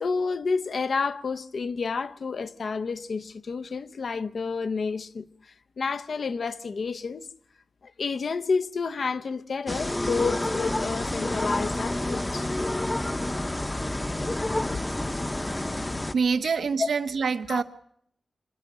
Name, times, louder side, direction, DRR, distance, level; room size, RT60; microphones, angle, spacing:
voice 1, 0.0-5.3 5.8-7.2 8.0-12.5 16.8-16.9 17.5-17.6, left 4 dB, 65° left, 0.8 m, -29 dB
sound 1, 9.7-16.1, left 1 dB, 15° left, 0.8 m, -29 dB
voice 2, 16.1-17.6, right 5 dB, 85° right, 1.0 m, -25 dB
25.5 x 12.0 x 8.7 m
wide cardioid pair, 115°, 0 cm